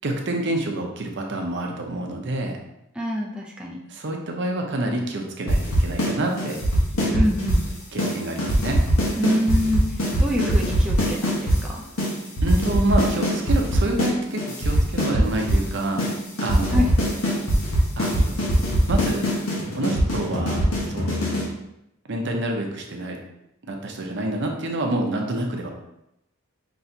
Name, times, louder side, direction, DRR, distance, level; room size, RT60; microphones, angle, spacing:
voice 1, 0.0-2.6 3.9-6.6 6.9-7.3 7.9-8.8 12.4-16.0 16.4-16.9 18.0-18.4 18.9-19.2 19.7-21.1 22.1-23.2 23.6-25.7, right 1 dB, 60° right, 2 dB, 0.7 m, -27 dB
voice 2, 3.0-3.8 7.1-7.6 9.2-9.8 10.2-11.8 16.7-16.9, left 1 dB, 5° right, -3 dB, 0.4 m, -25 dB
sound 1, 5.5-6.1 6.4-7.7 8.0-8.1 8.4-11.6 12.0-12.1 12.4-14.1 14.4-15.7 16.0-16.1 16.4-21.5, equal, 85° left, 1.2 m, -21 dB
5.7 x 3.0 x 2.7 m, 0.84 s
head